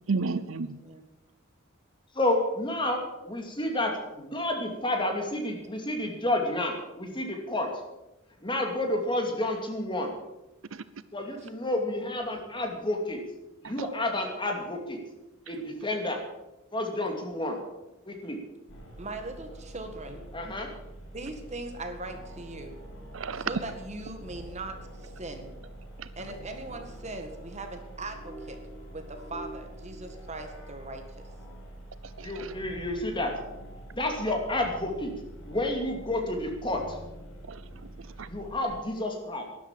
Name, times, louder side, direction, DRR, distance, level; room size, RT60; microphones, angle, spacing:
voice 1, 0.1-0.8 10.7-10.8 13.6-13.7 23.1-23.5 26.0-26.1 32.0-32.5 37.5-38.3, right 4 dB, 70° right, 15 dB, 0.6 m, -33 dB
voice 2, 2.1-7.7 8.4-10.1 11.1-13.2 13.6-15.0 15.5-16.2 16.7-17.6 18.1-18.4 20.3-20.7 32.2-33.3 33.9-35.1 35.5-37.0 38.3-39.4, left 1 dB, 25° left, 2 dB, 2.6 m, -30 dB
sound 1, 18.7-38.6, right 1 dB, 85° left, 4.2 m, -45 dB
voice 3, 19.0-20.2 21.1-22.8 23.4-25.5 26.2-28.6 28.9-31.0 37.8-38.0, right 2 dB, 35° right, 6 dB, 1.8 m, -40 dB
12.5 x 11.0 x 7.5 m, 0.96 s
head